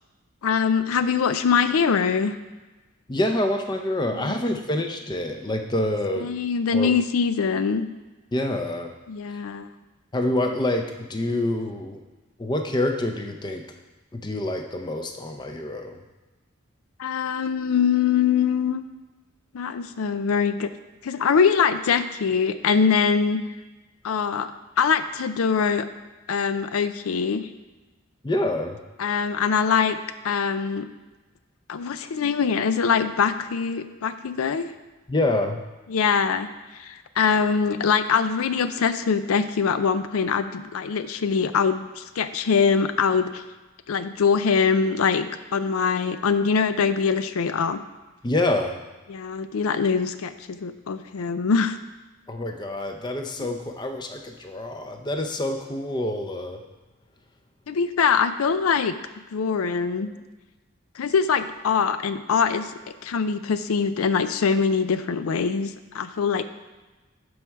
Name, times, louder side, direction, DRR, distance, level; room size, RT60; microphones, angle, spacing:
voice 1, 0.4-2.4 6.2-7.9 9.1-9.7 17.0-18.8 19.5-20.7 21.0-23.4 24.0-24.5 24.8-25.9 26.3-27.5 29.0-30.0 30.2-30.9 31.7-34.7 35.9-43.4 43.9-47.8 49.1-51.8 57.7-59.0 59.3-60.1 61.0-62.7 63.0-66.4, left 6 dB, 85° left, 11 dB, 0.4 m, -23 dB
voice 2, 3.1-6.3 6.7-6.9 8.3-8.9 9.3-9.4 10.1-12.0 12.4-13.6 14.1-16.0 28.2-28.8 35.1-35.6 48.2-48.8 52.3-56.6, left 1 dB, 20° left, 4 dB, 0.6 m, -26 dB
11.5 x 4.7 x 4.6 m, 1.2 s
head